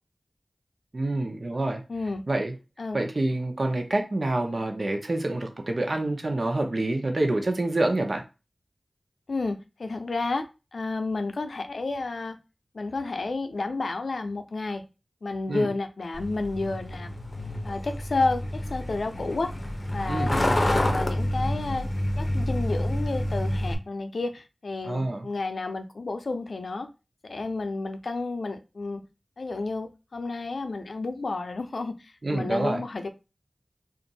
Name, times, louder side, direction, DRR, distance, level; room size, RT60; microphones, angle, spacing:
voice 1, 0.9-1.8 2.3-2.5 2.9-8.2 15.5-15.7 20.1-20.3 24.8-25.2 32.2-32.8, right 2 dB, 50° right, 0.8 m, -27 dB
voice 2, 1.9-2.2 2.8-3.0 9.3-10.4 10.7-12.4 12.7-14.8 15.2-17.1 17.6-19.5 19.9-20.3 20.6-21.9 22.2-26.9 27.2-29.0 29.4-33.1, left 3 dB, 75° left, 0.5 m, -31 dB
Truck, 16.1-23.8, left 1 dB, 40° left, 0.7 m, -28 dB
2.6 x 2.5 x 4.0 m
wide cardioid pair, 60°, 0 cm